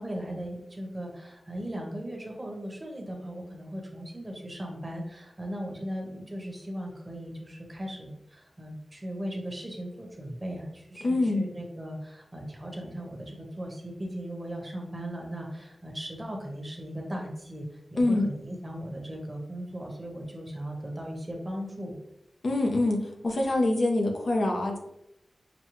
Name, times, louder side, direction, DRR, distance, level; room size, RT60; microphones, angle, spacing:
voice 1, 0.0-22.0, equal, 25° right, 0 dB, 1.1 m, -38 dB
voice 2, 11.0-11.5 18.0-18.3 22.4-24.8, left 2 dB, 65° left, 1 dB, 0.8 m, -25 dB
6.1 x 2.3 x 3.1 m, 0.80 s
wide cardioid pair, 85°, 0 cm